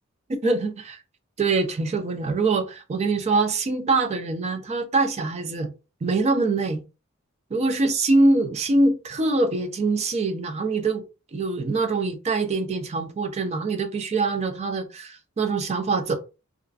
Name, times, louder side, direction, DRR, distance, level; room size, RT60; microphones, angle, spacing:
voice 1, 0.4-0.7 1.4-5.7 6.0-6.8 7.5-11.0 11.3-16.1, right 3 dB, 30° right, 0.4 m, -24 dB
2.4 x 2.3 x 2.3 m
head